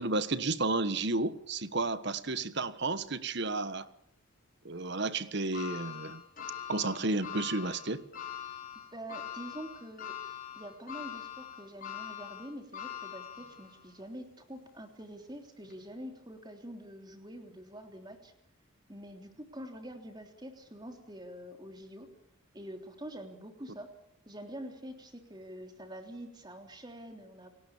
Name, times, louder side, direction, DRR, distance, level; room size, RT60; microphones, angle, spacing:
voice 1, 0.0-3.9 4.6-6.2 6.7-8.0, right 3 dB, 55° right, 14 dB, 1.3 m, -32 dB
sound 1, 5.5-13.9 14.4-14.5 15.6-15.7, left 9 dB, 40° left, 6.2 m, -43 dB
voice 2, 8.9-10.1 10.5-18.3 18.9-22.1 22.5-23.9 24.2-27.5, equal, 20° right, 5 dB, 3.4 m, -46 dB
29.5 x 18.0 x 7.2 m, 0.71 s
head